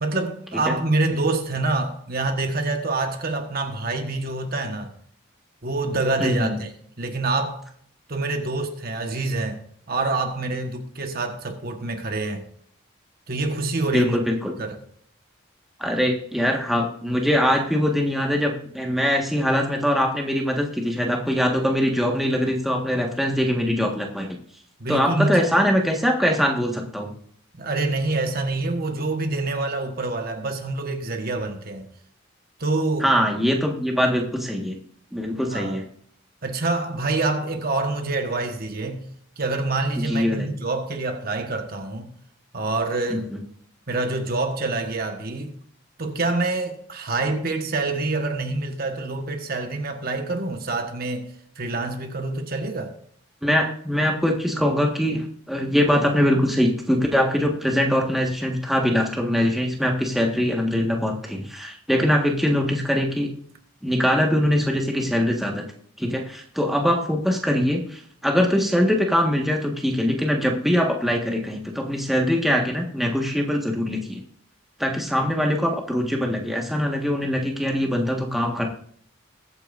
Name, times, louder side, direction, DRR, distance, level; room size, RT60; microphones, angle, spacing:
voice 1, 0.0-4.9 5.6-6.7 7.0-7.6 8.1-9.6 9.9-12.4 13.3-14.2 14.6-14.8 24.8-25.4 27.5-31.9 32.6-33.1 35.5-35.8 36.4-39.1 39.4-42.1 42.5-43.3 43.9-45.6 46.0-51.3 51.6-52.9, right 2 dB, 45° right, 1.4 m, -26 dB
voice 2, 6.2-6.6 13.9-14.5 15.8-24.3 24.9-27.1 33.0-34.8 35.1-35.8 40.1-40.5 43.1-43.2 53.4-63.3 63.8-65.6 66.0-74.2 74.8-78.7, equal, ahead, 1.5 m, -22 dB
21.5 x 8.9 x 2.6 m
head